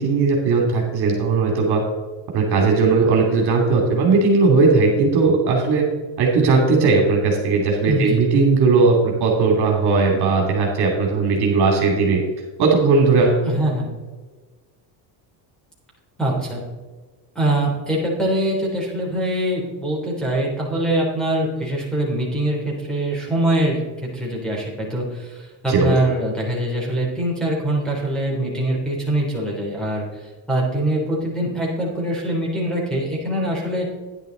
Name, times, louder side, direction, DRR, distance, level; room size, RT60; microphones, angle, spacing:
voice 1, 0.0-1.8 2.3-5.8 6.2-12.2 12.6-13.4 25.7-25.9, right 4 dB, 50° right, 0 dB, 2.9 m, -17 dB
voice 2, 7.8-8.2 13.4-13.9 16.2-16.6 17.3-33.8, right 1 dB, ahead, -3 dB, 3.4 m, -23 dB
10.5 x 10.5 x 3.9 m, 1.3 s
cardioid pair, 125°, 48 cm